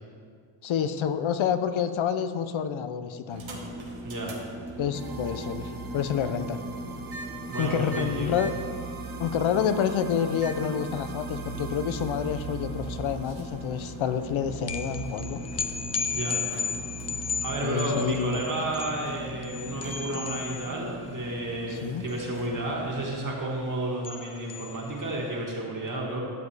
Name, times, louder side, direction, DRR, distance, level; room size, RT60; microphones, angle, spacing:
voice 1, 0.6-3.4 4.8-6.6 7.6-8.5 9.2-15.4 17.6-18.4 21.7-22.0, left 8 dB, 70° left, 10 dB, 0.7 m, -28 dB
sound 1, 3.3-23.1, right 1 dB, 70° right, 1.7 m, -40 dB
voice 2, 4.0-4.4 7.5-8.3 16.1-16.4 17.4-26.2, right 2 dB, 40° right, -2 dB, 2.1 m, -31 dB
sound 2, 4.9-20.1, right 5 dB, 90° right, 1.2 m, -42 dB
sound 3, 14.6-25.3, left 6 dB, 30° left, 0.5 m, -35 dB
12.5 x 7.3 x 3.3 m, 2.1 s
cardioid pair, 85°, 49 cm